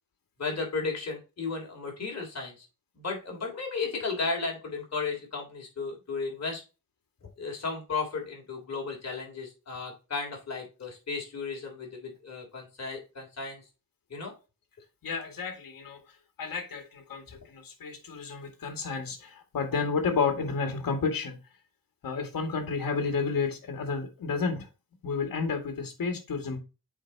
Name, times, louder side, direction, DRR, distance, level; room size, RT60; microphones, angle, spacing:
voice 1, 0.4-2.7 2.9-6.6 7.4-13.6 14.1-14.3, left 4 dB, 50° left, 0 dB, 3.5 m, -34 dB
voice 2, 15.0-16.0 16.4-21.4 22.0-24.7 25.0-26.6, left 5 dB, 75° left, 4 dB, 2.2 m, -31 dB
8.4 x 4.8 x 2.9 m, 0.30 s
wide cardioid pair, 115°, 34 cm